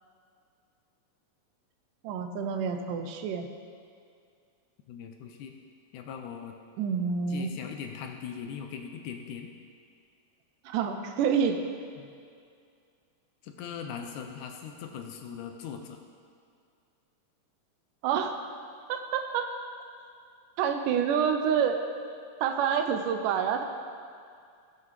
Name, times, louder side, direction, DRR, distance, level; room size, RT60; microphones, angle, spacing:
voice 1, 2.0-3.5 6.8-7.5 10.7-11.6 18.0-18.4 18.9-19.5 20.6-21.8 22.4-23.6, right 7 dB, 80° right, 5 dB, 2.2 m, -27 dB
voice 2, 4.9-5.5 5.9-6.6 7.3-9.5 12.0-12.1 13.4-16.0, left 7 dB, 75° left, 4 dB, 2.0 m, -40 dB
16.0 x 7.4 x 3.2 m, 2.3 s
omnidirectional pair, 3.8 m